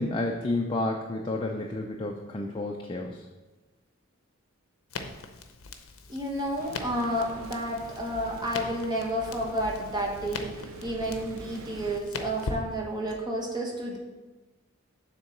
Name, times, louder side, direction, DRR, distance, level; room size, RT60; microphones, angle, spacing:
voice 1, 0.0-3.2, left 2 dB, 25° left, 1 dB, 0.4 m, -30 dB
Crackle, 4.9-13.2, left 3 dB, 70° left, 0.6 m, -41 dB
voice 2, 6.1-10.5 10.8-14.0, equal, 20° right, -1 dB, 1.1 m, -31 dB
sound 1, 6.6-12.0, right 3 dB, 80° right, 0.6 m, -46 dB
6.8 x 3.7 x 5.8 m, 1.2 s
head